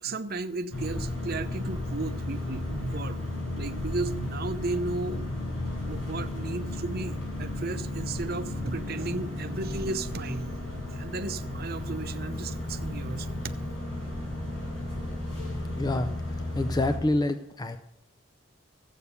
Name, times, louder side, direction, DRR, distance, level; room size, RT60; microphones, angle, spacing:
voice 1, 0.0-3.3 3.5-5.2 5.9-10.5 10.9-13.5, right 3 dB, 50° right, 9 dB, 0.8 m, -34 dB
sound 1, 0.7-17.0, left 1 dB, 70° left, 7.1 m, -34 dB
voice 2, 15.7-17.8, left 2 dB, 20° left, 9 dB, 0.5 m, -28 dB
14.0 x 8.3 x 6.8 m, 0.81 s
head